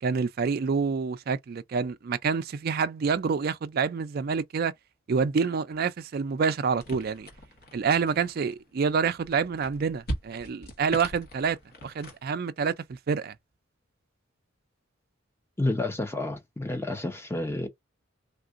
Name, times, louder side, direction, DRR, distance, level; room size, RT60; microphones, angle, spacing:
voice 1, 0.0-4.7 5.1-7.3 7.7-11.6 11.8-13.3, right 5 dB, 50° right, 0.3 m, -27 dB
sound 1, 6.8-12.2, right 1 dB, 50° left, 1.0 m, -40 dB
voice 2, 15.6-17.7, left 2 dB, 10° left, 0.6 m, -30 dB
3.6 x 2.4 x 2.5 m
head